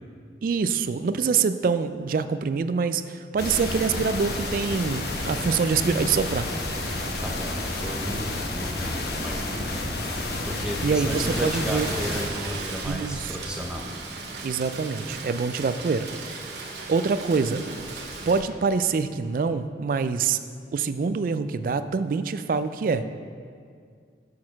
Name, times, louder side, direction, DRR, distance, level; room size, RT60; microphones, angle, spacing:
voice 1, 0.4-6.5 10.8-11.9 12.8-13.3 14.4-16.5 16.9-17.6 18.3-20.4 20.7-23.0, right 5 dB, 50° right, 11 dB, 0.3 m, -25 dB
sound 1, 3.4-12.3, left 2 dB, 65° left, 0.9 m, -30 dB
voice 2, 7.2-9.9 10.5-13.9, equal, 5° right, 0 dB, 0.7 m, -34 dB
Rain, 11.1-18.4, right 3 dB, 75° right, 1.1 m, -36 dB
6.5 x 6.4 x 5.8 m, 2.1 s
head